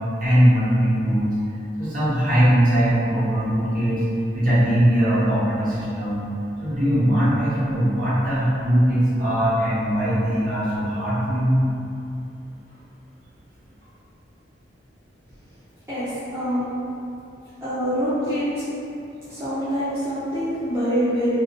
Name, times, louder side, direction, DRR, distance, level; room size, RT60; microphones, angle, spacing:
voice 1, 0.0-1.3 1.8-4.0 4.3-6.2 6.6-11.6, equal, 50° right, -12 dB, 0.9 m, -20 dB
voice 2, 15.9-16.6 17.6-18.6 19.2-21.4, equal, 15° right, -14 dB, 0.4 m, -25 dB
2.3 x 2.2 x 2.4 m, 2.7 s
head